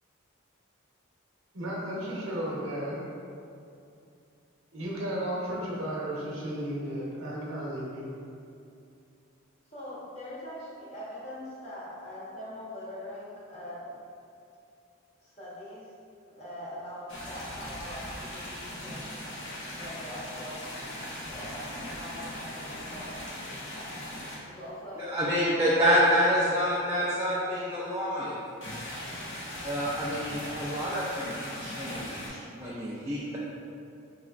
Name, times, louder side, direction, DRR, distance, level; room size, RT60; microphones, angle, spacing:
voice 1, 1.5-3.0 4.7-8.1, right 1 dB, 75° right, -5 dB, 0.9 m, -34 dB
voice 2, 9.7-13.8 15.2-15.9 16.3-19.2 19.7-23.9 24.4-25.6 25.8-27.6, left 1 dB, 30° left, -9 dB, 1.1 m, -43 dB
sound 1, 17.1-24.4 28.6-32.3, left 1 dB, 65° left, 0.8 m, -39 dB
voice 3, 25.0-28.4 29.6-33.4, equal, 15° right, -7 dB, 0.4 m, -27 dB
4.6 x 3.1 x 2.4 m, 2.6 s
head